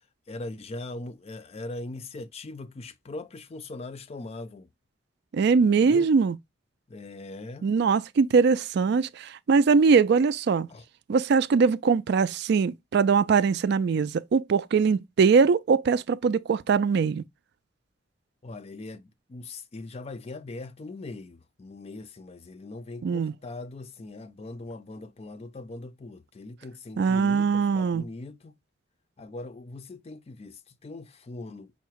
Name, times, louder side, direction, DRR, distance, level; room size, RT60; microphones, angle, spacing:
voice 1, 0.3-4.7 5.6-6.1 6.9-7.7 10.7-10.8 18.4-28.6 29.2-31.7, left 2 dB, 30° left, 0.4 m, -40 dB
voice 2, 5.3-6.4 7.6-10.7 11.1-17.2 23.0-23.3 27.0-28.0, right 5 dB, 60° right, 0.3 m, -22 dB
5.7 x 2.1 x 4.5 m
head